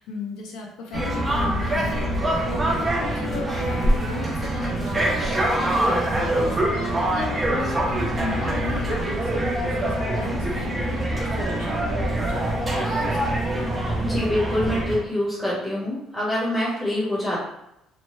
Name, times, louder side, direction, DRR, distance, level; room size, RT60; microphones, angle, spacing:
voice 1, 0.0-2.1 2.4-5.3 5.5-13.9, left 4 dB, 75° left, 1 dB, 0.5 m, -35 dB
sound 1, 0.9-15.0, right 1 dB, 15° right, 0.5 m, -24 dB
voice 2, 14.0-17.4, left 1 dB, 10° left, -6 dB, 0.9 m, -25 dB
3.0 x 2.1 x 3.0 m, 0.84 s
cardioid pair, 170°, 0 cm